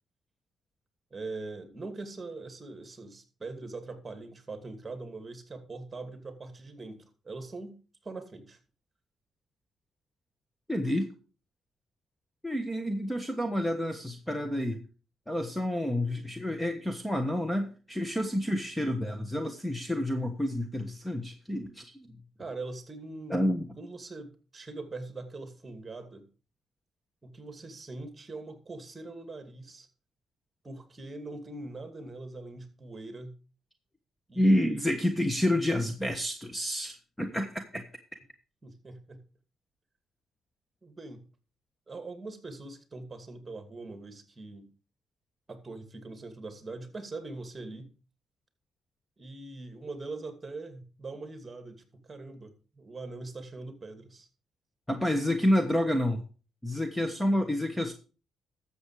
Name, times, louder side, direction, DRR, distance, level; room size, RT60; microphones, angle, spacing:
voice 1, 1.1-8.6 22.4-26.3 27.2-29.9 30.6-33.4 34.3-34.7 38.6-39.3 40.8-41.2 41.9-44.7 45.5-47.9 49.2-54.3, right 3 dB, 25° right, 8 dB, 2.5 m, -42 dB
voice 2, 10.7-11.1 12.4-14.8 15.3-22.1 23.3-23.7 34.3-37.8 54.9-56.2 56.6-57.9, left 1 dB, 5° left, 7 dB, 1.2 m, -29 dB
13.0 x 7.3 x 4.8 m, 0.36 s
cardioid pair, 90°, 0 cm